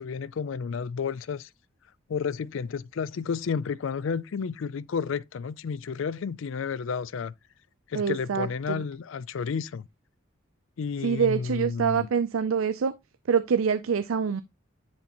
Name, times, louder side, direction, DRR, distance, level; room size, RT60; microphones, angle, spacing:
voice 1, 0.0-1.5 2.1-7.3 7.9-9.9 10.8-12.1, left 6 dB, 70° left, 0.4 m, -31 dB
voice 2, 7.9-8.8 11.0-12.9 13.3-14.4, right 6 dB, 80° right, 0.4 m, -25 dB
10.0 x 4.3 x 2.9 m
head